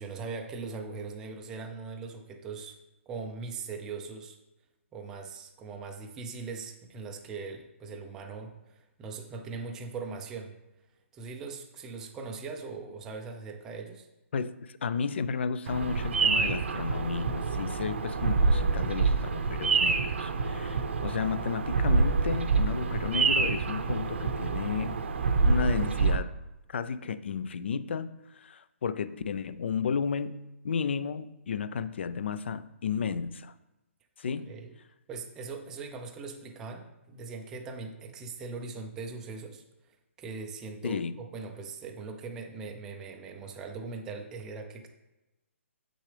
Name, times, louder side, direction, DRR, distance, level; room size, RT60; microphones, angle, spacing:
voice 1, 0.0-2.8 3.1-4.4 4.9-10.5 11.1-14.1 34.5-34.7 35.1-39.6 40.2-44.9, right 4 dB, 10° right, 3 dB, 0.4 m, -40 dB
voice 2, 14.3-25.0 25.4-26.3 26.7-33.5 34.2-34.5 40.8-41.1, left 6 dB, 55° left, 14 dB, 0.4 m, -33 dB
Bird vocalization bird call bird song, 15.7-26.2, right 4 dB, 60° right, 0.7 m, -27 dB
7.6 x 6.2 x 3.3 m, 0.98 s
hypercardioid pair, 170°, 7 cm